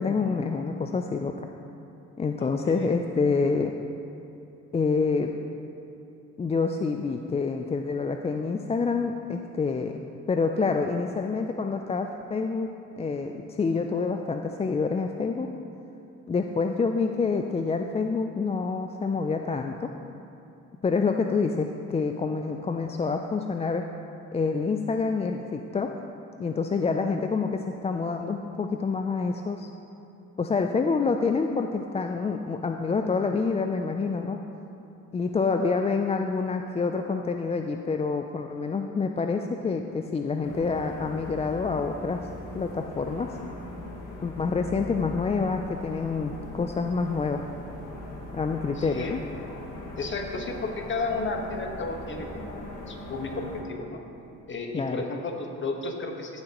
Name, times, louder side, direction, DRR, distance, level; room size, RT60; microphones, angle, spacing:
voice 1, 0.0-1.5 2.2-3.7 4.7-5.3 6.4-9.9 10.3-12.7 13.0-15.5 16.3-19.9 20.8-23.9 24.3-25.9 26.4-29.7 30.4-34.4 35.1-42.3 42.5-43.4 44.2-47.4 48.3-49.2 54.7-55.0, left 4 dB, 20° left, 5 dB, 0.3 m, -27 dB
voice 2, 2.4-3.0 48.7-49.1 50.0-54.0 54.5-56.4, left 3 dB, 40° left, 2 dB, 1.3 m, -33 dB
sound 1, 40.4-53.6, left 2 dB, 85° left, 1.7 m, -40 dB
14.0 x 7.4 x 3.0 m, 2.9 s
cardioid pair, 90°, 30 cm